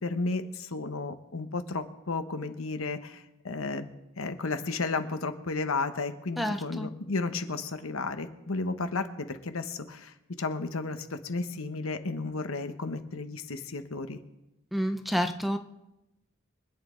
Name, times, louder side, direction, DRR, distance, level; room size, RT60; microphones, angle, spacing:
voice 1, 0.0-3.9 4.2-14.2, left 3 dB, 70° left, 8 dB, 1.1 m, -33 dB
voice 2, 6.4-6.9 14.7-15.6, equal, ahead, 7 dB, 0.7 m, -29 dB
24.0 x 9.4 x 3.9 m, 0.92 s
head